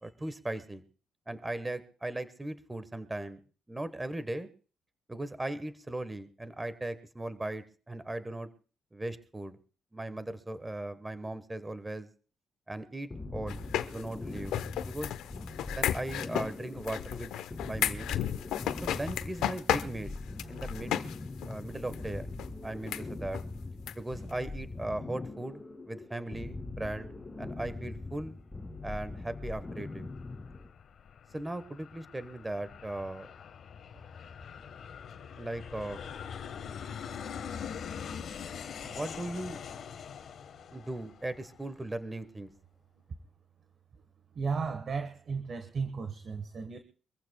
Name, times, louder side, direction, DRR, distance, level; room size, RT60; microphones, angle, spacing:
voice 1, 0.0-0.8 1.3-3.4 3.7-4.5 5.1-8.5 8.9-9.6 9.9-12.1 12.7-14.6 14.8-15.1 15.7-17.3 17.6-18.2 18.8-20.2 20.5-21.1 21.4-22.3 22.6-23.4 24.0-28.4 28.8-30.1 31.3-33.3 35.4-36.0 38.9-39.6 40.7-42.5, right 1 dB, 15° right, 12 dB, 1.2 m, -38 dB
sound 1, 13.1-30.7, left 3 dB, 20° left, 2.2 m, -42 dB
sound 2, 13.5-21.2 21.4-21.5 21.9-22.0 22.4-22.5 22.9-23.0 23.3-23.4 23.9-24.0 24.2-24.3, left 11 dB, 85° left, 0.8 m, -33 dB
Aircraft, 28.6-41.8, left 7 dB, 60° left, 1.3 m, -44 dB
voice 2, 44.3-46.8, right 5 dB, 50° right, 8 dB, 1.4 m, -34 dB
25.0 x 15.0 x 2.3 m, 0.38 s
cardioid pair, 90°, 0 cm